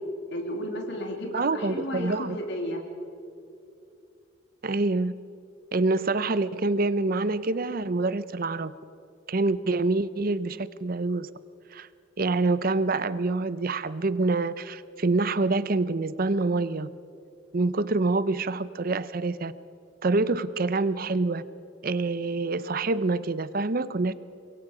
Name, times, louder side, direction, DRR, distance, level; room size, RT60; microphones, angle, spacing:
voice 1, 0.3-2.8, left 1 dB, 60° left, 2 dB, 2.7 m, -33 dB
voice 2, 1.3-2.4 4.6-5.1 5.7-8.7 9.3-11.3 11.7-11.9 12.2-16.9 17.5-19.5 20.0-21.4 21.8-24.1, right 3 dB, 50° right, 16 dB, 0.7 m, -26 dB
25.0 x 22.5 x 5.0 m, 2.5 s
head